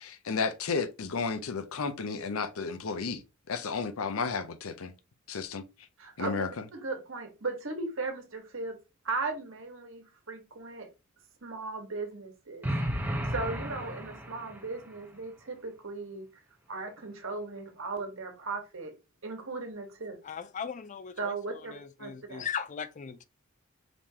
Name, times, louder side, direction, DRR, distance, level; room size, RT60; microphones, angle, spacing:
voice 1, 0.0-3.2 3.5-4.9 5.3-5.6 6.2-6.6, left 5 dB, 90° left, 0.6 m, -32 dB
voice 2, 6.0-6.5 6.7-8.8 9.0-10.9 11.4-12.7 13.3-16.3 16.7-18.9 19.2-20.2 21.2-21.7 22.0-22.4, right 3 dB, 65° right, 1.4 m, -37 dB
sound 1, 12.6-14.7, equal, 10° right, 0.8 m, -33 dB
voice 3, 20.2-23.2, left 7 dB, 35° left, 0.4 m, -38 dB
5.0 x 3.6 x 2.8 m
head